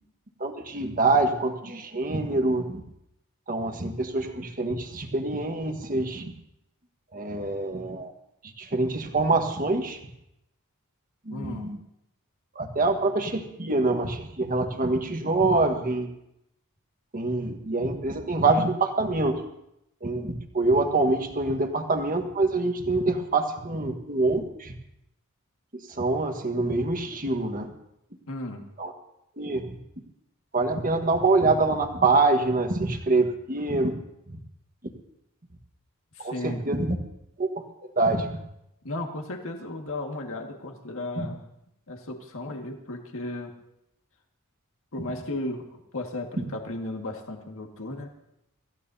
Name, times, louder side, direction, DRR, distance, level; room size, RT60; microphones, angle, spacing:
voice 1, 0.4-2.8 3.5-6.3 7.1-8.1 8.6-10.0 11.2-11.8 12.5-16.1 17.1-19.4 20.0-24.7 25.9-27.7 28.8-28.9 29.4-29.7 30.5-34.0 34.3-34.4 36.2-37.0 37.4-37.5 37.8-38.4 41.2-41.3 46.4-46.5, right 3 dB, 40° right, 5 dB, 1.5 m, -25 dB
voice 2, 11.3-11.7 28.3-28.7 36.2-36.7 38.8-41.5 41.9-43.5 44.9-48.1, left 2 dB, 65° left, 2 dB, 1.9 m, -35 dB
26.0 x 15.0 x 2.8 m, 0.81 s
head